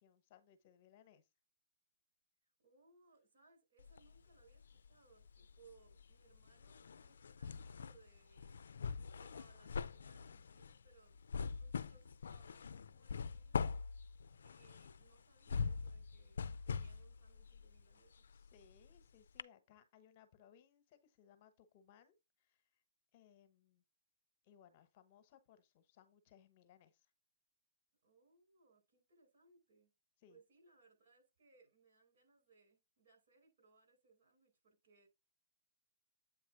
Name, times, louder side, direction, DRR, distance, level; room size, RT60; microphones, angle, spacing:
voice 1, 0.0-1.3 18.3-22.8 23.1-23.8 24.4-27.1 30.2-30.4, left 9 dB, 40° left, 1.1 m, -66 dB
voice 2, 2.6-8.7 9.2-13.7 14.4-18.3 28.0-29.9 30.3-35.1, right 4 dB, 60° right, 5.0 m, -69 dB
sound 1, 3.8-4.9 5.2-19.0 19.4-19.5, left 5 dB, 85° left, 0.4 m, -43 dB
8.2 x 3.2 x 4.9 m
hypercardioid pair, 150°, 0 cm